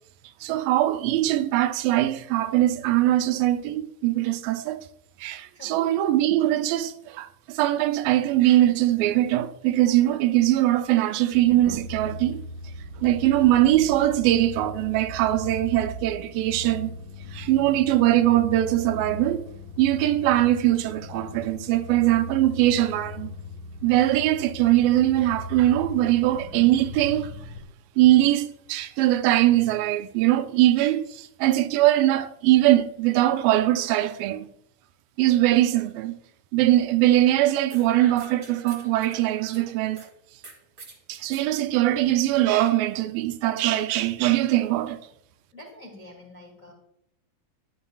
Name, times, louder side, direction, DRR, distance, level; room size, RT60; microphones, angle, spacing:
voice 1, 0.4-4.8 5.2-12.4 13.0-16.9 17.3-19.5 19.8-23.3 23.8-27.3 28.0-34.5 35.2-36.1 36.5-40.1 41.1-45.0, right 14 dB, 85° right, 2.3 m, -21 dB
sound 1, 11.3-27.6, left 2 dB, 60° left, 2.8 m, -39 dB
sound 2, 37.7-40.1 40.4-41.5, right 3 dB, 45° right, 1.3 m, -46 dB
voice 2, 45.5-46.7, left 1 dB, 40° left, 1.1 m, -46 dB
11.0 x 10.5 x 2.3 m
omnidirectional pair, 4.0 m